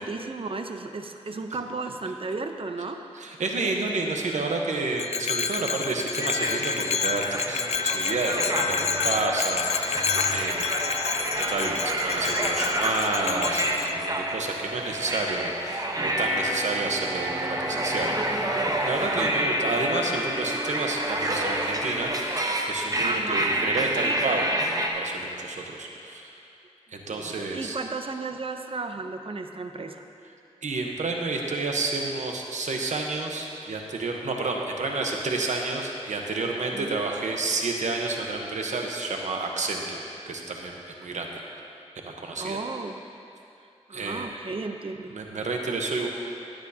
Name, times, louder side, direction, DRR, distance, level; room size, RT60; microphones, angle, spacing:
voice 1, 0.0-3.0 19.2-19.9 23.0-23.6 27.1-30.0 36.7-37.1 42.4-43.0 43.9-45.1, right 3 dB, 50° right, 6 dB, 0.7 m, -34 dB
voice 2, 3.1-10.6 11.4-18.1 18.8-24.5 24.8-26.3 26.9-27.8 30.6-41.4 42.0-42.6 43.9-44.3 45.1-46.1, right 3 dB, 90° right, 1 dB, 1.0 m, -30 dB
Bell, 5.0-13.9, left 6 dB, 65° left, 0.4 m, -29 dB
sound 1, 6.2-24.9, right 1 dB, 30° right, 1.0 m, -28 dB
16.5 x 9.0 x 2.8 m, 2.7 s
cardioid pair, 55°, 12 cm